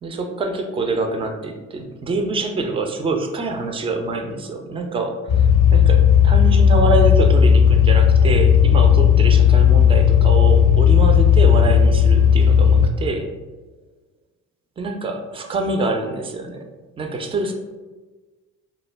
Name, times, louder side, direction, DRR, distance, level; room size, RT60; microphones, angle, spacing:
voice 1, 0.0-13.3 14.8-16.7 17.0-17.5, right 3 dB, 15° right, 5 dB, 0.3 m, -25 dB
sound 1, 5.3-12.9, left 8 dB, 50° left, 0.5 m, -14 dB
2.1 x 2.1 x 3.3 m, 1.3 s
hypercardioid pair, 50°, 38 cm